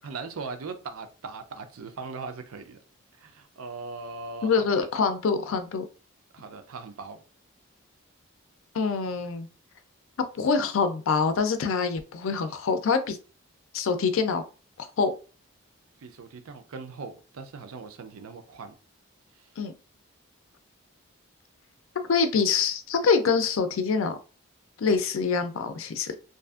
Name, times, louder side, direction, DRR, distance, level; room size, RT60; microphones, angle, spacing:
voice 1, 0.0-2.8 3.1-4.9 6.3-7.2 16.0-18.7 19.4-19.5, right 4 dB, 80° right, 0.5 m, -39 dB
voice 2, 4.4-5.8 8.7-9.5 10.3-13.2 13.7-14.4 14.8-15.1 19.6-19.7 22.1-24.2 24.8-26.2, left 5 dB, 70° left, 0.4 m, -25 dB
2.6 x 2.4 x 2.3 m
head